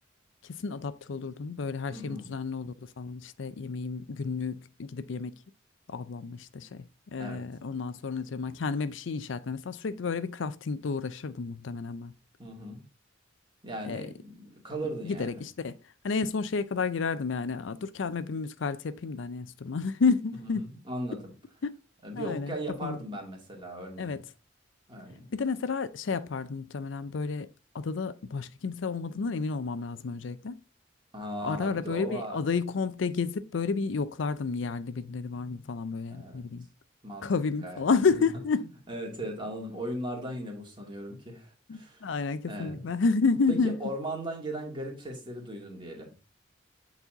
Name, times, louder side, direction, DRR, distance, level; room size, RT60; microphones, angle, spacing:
voice 1, 0.5-5.3 5.9-6.8 7.1-12.1 13.8-14.1 15.0-15.8 16.0-20.7 21.6-21.7 22.1-22.5 22.8-23.0 24.0-24.2 25.3-27.5 27.7-30.6 31.4-36.7 37.2-38.7 41.7-43.8, left 4 dB, 75° left, 0.5 m, -31 dB
voice 2, 1.9-2.3 7.2-7.4 12.4-12.8 13.6-15.4 20.4-21.3 22.0-24.2 24.9-25.3 31.1-32.4 36.1-36.5 37.0-37.3 37.6-37.8 38.9-42.0 42.5-42.9 43.5-46.2, right 1 dB, 25° right, 2.3 m, -38 dB
8.3 x 4.2 x 3.9 m
head